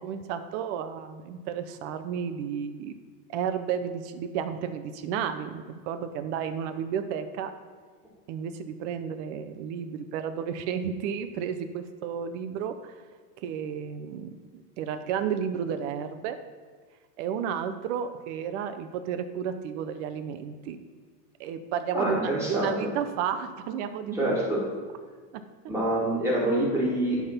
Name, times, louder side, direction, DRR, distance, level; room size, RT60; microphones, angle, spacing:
voice 1, 0.0-3.0 3.3-7.5 8.3-12.9 13.4-16.4 17.2-20.8 21.4-24.4 25.3-25.4, right 8 dB, 45° right, 10 dB, 0.6 m, -32 dB
voice 2, 21.9-22.7 24.1-24.6 25.7-27.3, right 1 dB, 5° right, -5 dB, 2.3 m, -26 dB
10.5 x 3.6 x 5.7 m, 1.5 s
supercardioid pair, 140°, 49 cm